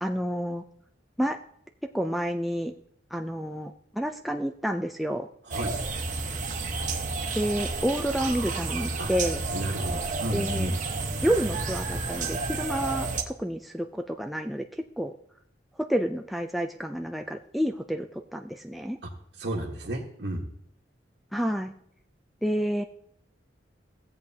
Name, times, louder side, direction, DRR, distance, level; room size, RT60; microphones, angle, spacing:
voice 1, 0.0-0.6 1.2-1.4 1.9-2.7 3.1-5.3 7.3-9.4 10.3-10.7 11.2-15.1 15.8-19.0 21.3-21.7 22.4-22.8, equal, ahead, 3 dB, 0.3 m, -29 dB
sound 1, 5.5-13.2, right 3 dB, 45° right, 1.1 m, -31 dB
voice 2, 5.5-5.8 9.0-9.1 9.5-10.7 19.4-20.4, right 1 dB, 75° right, -2 dB, 1.3 m, -32 dB
16.5 x 7.9 x 2.8 m, 0.72 s
head